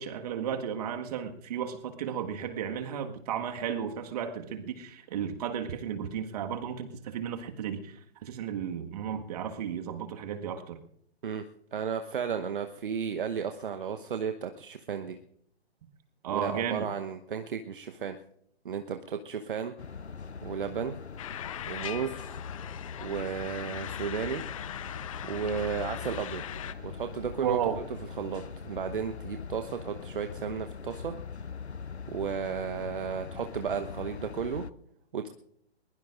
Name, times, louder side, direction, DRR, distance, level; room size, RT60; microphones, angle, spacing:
voice 1, 0.0-10.8 16.2-16.9 27.4-27.8, right 8 dB, 35° right, 6 dB, 1.7 m, -34 dB
voice 2, 11.2-15.2 16.3-18.2 18.6-19.7 20.4-20.9 21.7-22.4 23.0-24.4 25.2-26.4 26.8-27.8 28.2-31.1 32.1-34.6 35.1-35.3, right 7 dB, 50° right, 7 dB, 1.1 m, -34 dB
sound 1, 19.8-34.7, left 6 dB, 85° left, 0.7 m, -42 dB
sound 2, 21.2-26.7, left 11 dB, 30° left, 0.7 m, -40 dB
21.5 x 21.0 x 2.5 m, 0.70 s
figure-of-eight pair, 130°, 33 cm